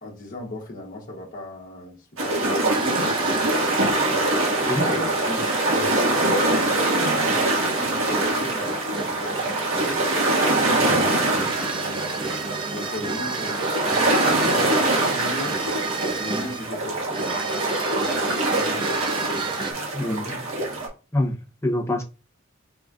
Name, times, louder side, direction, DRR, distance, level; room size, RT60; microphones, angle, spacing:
voice 1, 0.0-3.9 4.8-10.0 10.7-15.6 16.2-17.3 18.2-19.1, left 1 dB, 45° left, 1.2 m, -38 dB
sound 1, 2.2-20.9, right 2 dB, 75° right, 1.7 m, -23 dB
sound 2, 2.7-19.7, right 3 dB, 25° right, 0.5 m, -33 dB
voice 2, 19.9-20.5 21.1-22.0, left 1 dB, 15° left, 0.8 m, -25 dB
4.9 x 3.6 x 2.5 m
head